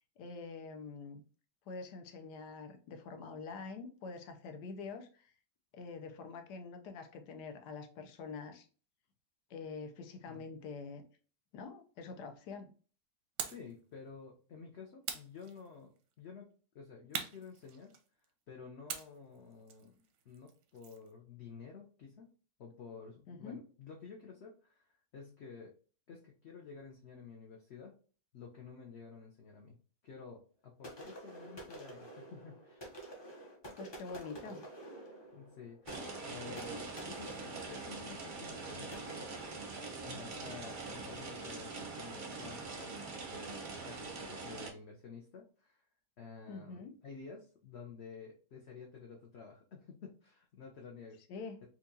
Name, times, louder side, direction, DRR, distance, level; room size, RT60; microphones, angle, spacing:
voice 1, 0.2-1.2 1.7-5.3 5.7-8.7 9.5-11.0 11.5-12.7 23.3-23.6 33.8-34.7 46.5-46.9 51.3-51.6, left 4 dB, 85° left, 6 dB, 1.2 m, -46 dB
sound 1, 13.4-13.7 15.0-16.0 17.1-18.2 18.9-21.1, right 8 dB, 90° right, 1.2 m, -43 dB
voice 2, 13.5-16.5 16.7-17.9 18.5-22.3 22.6-25.7 26.1-28.0 28.3-29.8 30.0-32.9 35.3-39.3 40.0-42.9 43.3-45.9 46.2-51.2, left 5 dB, 65° left, 0 dB, 0.7 m, -51 dB
sound 2, 30.8-40.5, right 1 dB, 25° left, 0.5 m, -50 dB
sound 3, 35.9-44.7, right 3 dB, 50° right, 0.6 m, -43 dB
4.3 x 2.4 x 2.7 m, 0.40 s
omnidirectional pair, 1.7 m